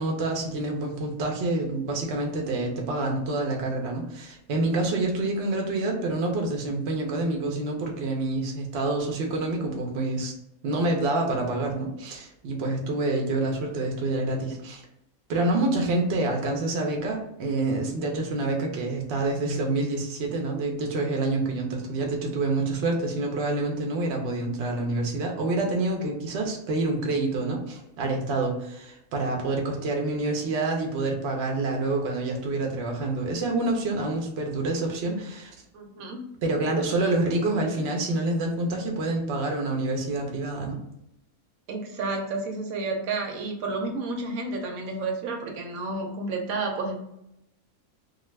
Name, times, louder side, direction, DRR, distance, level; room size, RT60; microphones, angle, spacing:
voice 1, 0.0-10.3 10.6-14.8 15.3-35.5 36.4-40.8, right 2 dB, 60° right, 1 dB, 0.8 m, -27 dB
voice 2, 35.7-36.2 41.7-46.9, right 3 dB, 75° right, 2 dB, 1.1 m, -31 dB
2.4 x 2.3 x 3.1 m, 0.81 s
omnidirectional pair, 1.5 m